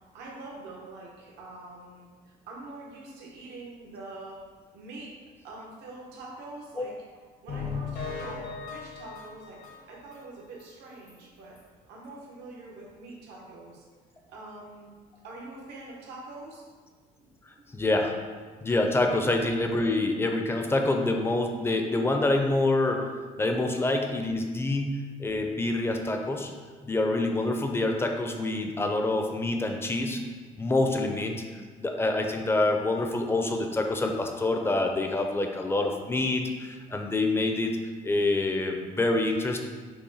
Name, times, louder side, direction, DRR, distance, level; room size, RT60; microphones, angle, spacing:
voice 1, 0.1-4.4 4.7-5.1 5.4-6.9 7.4-9.6 9.9-11.6 11.9-13.8 14.3-14.9 15.2-16.6 17.2-17.3, right 2 dB, 85° right, -3 dB, 1.0 m, -44 dB
sound 1, 7.5-10.2 10.6-10.7 11.1-11.2 11.6-11.7, left 5 dB, 60° left, 0.9 m, -37 dB
voice 2, 17.7-18.1 18.6-23.1 23.4-26.5 26.8-30.2 30.6-31.4 31.8-37.8 38.0-39.6, left 2 dB, 15° left, 3 dB, 0.5 m, -26 dB
5.7 x 2.2 x 4.0 m, 1.5 s
cardioid pair, 110°, 17 cm